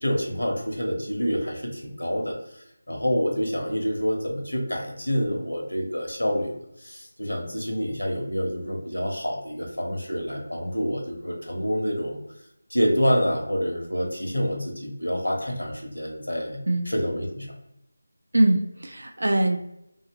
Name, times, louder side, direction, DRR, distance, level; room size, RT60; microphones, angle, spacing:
voice 1, 0.0-12.2 12.7-17.5, equal, 85° left, 0 dB, 1.0 m, -27 dB
voice 2, 18.3-19.6, right 1 dB, 65° right, 5 dB, 0.5 m, -22 dB
2.8 x 2.7 x 2.9 m, 0.81 s
figure-of-eight pair, 165°, 0 cm